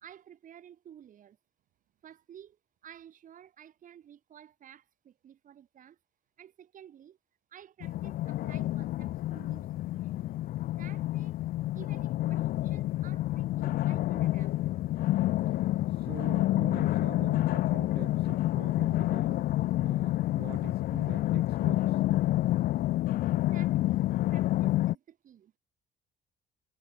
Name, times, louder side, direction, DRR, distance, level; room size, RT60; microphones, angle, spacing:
voice 1, 0.0-1.4 2.0-2.6 2.8-6.0 6.4-7.2 7.5-10.3 10.8-11.4 11.7-14.5 23.2-25.5, right 9 dB, 50° right, 2.8 m, -53 dB
sound 1, 7.8-24.9, left 15 dB, 60° left, 0.5 m, -28 dB
voice 2, 15.6-19.5 19.8-22.0, right 15 dB, 70° right, 2.4 m, -46 dB
cardioid pair, 110°, 17 cm